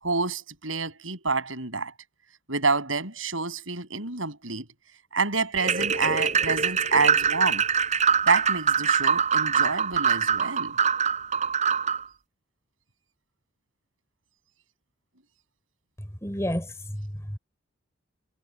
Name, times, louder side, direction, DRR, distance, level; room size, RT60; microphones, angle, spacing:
voice 1, 0.0-1.9 2.5-4.7 5.1-7.6 8.2-10.8, right 4 dB, 85° right, 7.9 m, -28 dB
sound 1, 5.6-12.0, right 6 dB, 35° right, 4.2 m, -24 dB
voice 2, 16.0-17.4, equal, 15° left, 3.7 m, -32 dB
head